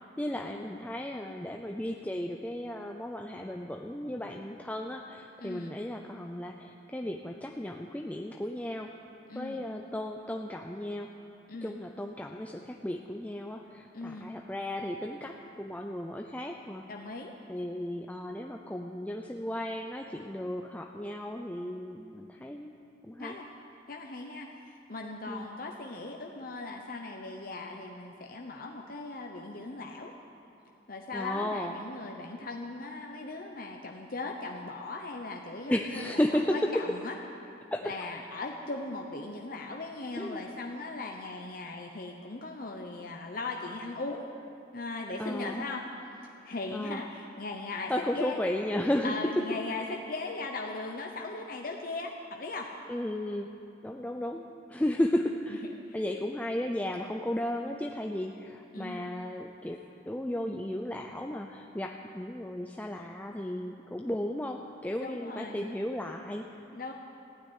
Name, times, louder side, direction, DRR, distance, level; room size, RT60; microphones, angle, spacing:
voice 1, 0.2-8.9 9.3-11.1 11.6-16.9 17.5-22.7 23.0-23.4 25.3-25.5 31.1-31.7 35.7-36.6 37.7-38.0 40.2-40.4 45.2-45.7 46.7-47.1 47.9-49.2 52.9-53.5 53.8-54.4 54.7-55.6 55.9-59.8 60.1-66.6, left 1 dB, 10° left, 2 dB, 0.5 m, -34 dB
voice 2, 5.4-5.7 9.3-9.6 11.5-11.8 13.9-14.3 16.9-17.3 23.2-23.5 23.9-30.1 30.9-37.1 37.8-44.3 44.7-45.8 46.4-48.4 49.0-52.7 55.9-56.0 58.7-59.1 65.0-65.6 66.7-66.9, left 3 dB, 50° left, 1 dB, 0.9 m, -38 dB
15.0 x 9.5 x 10.0 m, 2.8 s
head